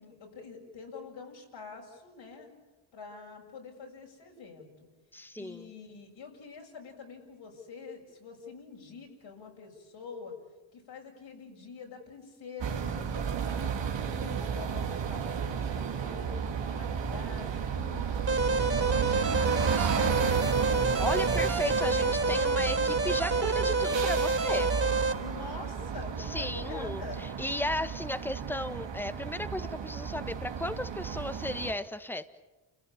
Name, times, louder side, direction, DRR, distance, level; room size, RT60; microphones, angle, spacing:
voice 1, 0.0-2.5 2.9-4.7 5.3-10.4 10.7-16.4 16.7-20.8 25.2-27.2, left 5 dB, 70° left, 0 dB, 7.1 m, -46 dB
voice 2, 5.1-5.7 21.0-24.7 26.2-32.2, left 1 dB, 5° left, 11 dB, 1.6 m, -35 dB
sound 1, 12.6-31.7, right 7 dB, 65° right, 2.5 m, -33 dB
sound 2, 18.3-25.1, right 3 dB, 30° right, 4.1 m, -28 dB
29.5 x 16.0 x 9.8 m, 1.1 s
supercardioid pair, 60°, 47 cm